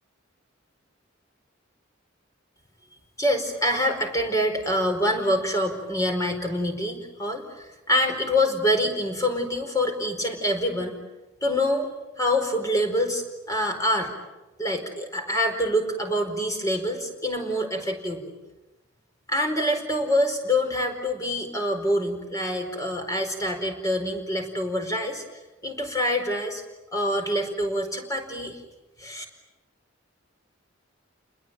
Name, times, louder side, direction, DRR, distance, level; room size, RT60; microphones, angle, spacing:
voice 1, 3.2-11.0 11.4-11.9 12.2-14.1 14.6-18.3 19.3-25.2 25.6-26.6 26.9-28.6 29.0-29.2, equal, 15° left, 4 dB, 4.6 m, -26 dB
30.0 x 21.0 x 9.0 m, 1.1 s
head